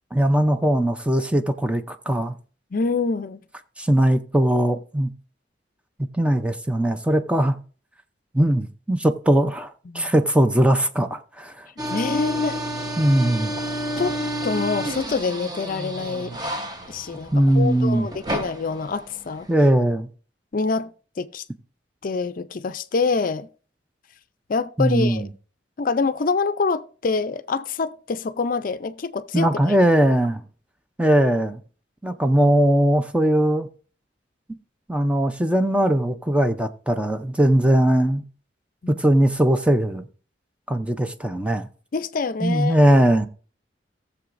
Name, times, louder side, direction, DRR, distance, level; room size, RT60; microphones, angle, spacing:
voice 1, 0.1-2.3 3.8-5.1 6.1-7.6 8.3-11.6 13.0-13.5 17.3-18.1 19.5-20.1 24.8-25.3 29.3-30.4 31.0-31.6 32.0-33.7 34.9-38.2 38.9-40.0 40.7-41.7 42.4-43.3, right 1 dB, 5° right, 0.5 m, -20 dB
voice 2, 2.7-3.4 9.9-10.1 11.9-12.6 14.0-14.2 14.4-16.4 16.9-19.5 20.5-20.9 21.2-21.4 22.0-23.5 24.5-25.3 25.8-29.8 38.8-39.0 41.9-42.8, left 4 dB, 50° left, 0.5 m, -26 dB
sound 1, 11.8-19.5, equal, 20° right, 1.0 m, -30 dB
18.5 x 7.0 x 2.6 m
head